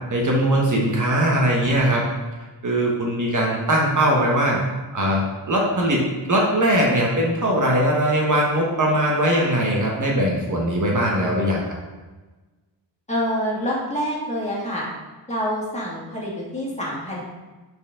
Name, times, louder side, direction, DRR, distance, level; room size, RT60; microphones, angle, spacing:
voice 1, 0.1-2.0 2.6-4.6 4.9-11.6, right 1 dB, 45° right, -2 dB, 1.2 m, -20 dB
voice 2, 13.1-14.9 15.3-17.2, equal, 15° left, -6 dB, 2.2 m, -26 dB
8.1 x 4.6 x 3.7 m, 1.2 s
wide cardioid pair, 120°, 43 cm